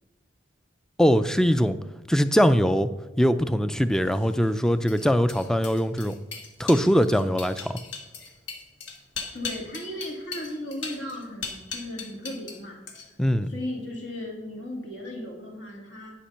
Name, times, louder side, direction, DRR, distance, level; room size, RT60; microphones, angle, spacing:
voice 1, 1.0-1.8 2.1-2.9 3.2-6.1 6.6-7.8 13.2-13.5, equal, 5° left, 12 dB, 0.4 m, -22 dB
sound 1, 4.1-12.6 12.9-13.3, left 5 dB, 90° left, 1.4 m, -38 dB
voice 2, 9.3-12.8 13.5-16.3, left 1 dB, 70° left, 0 dB, 2.3 m, -36 dB
10.0 x 5.1 x 5.6 m, 1.1 s
head